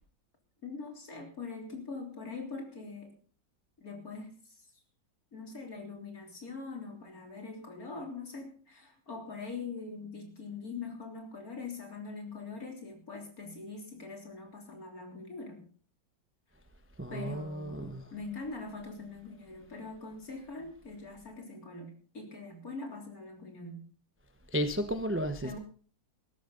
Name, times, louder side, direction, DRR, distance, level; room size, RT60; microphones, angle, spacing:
voice 1, 0.6-3.1 3.8-4.7 5.3-15.7 17.1-23.9 25.4-25.6, left 4 dB, 50° left, 4.0 m, -43 dB
voice 2, 17.0-18.0 24.5-25.6, equal, 10° right, 0.7 m, -33 dB
17.0 x 13.5 x 4.0 m
omnidirectional pair, 2.0 m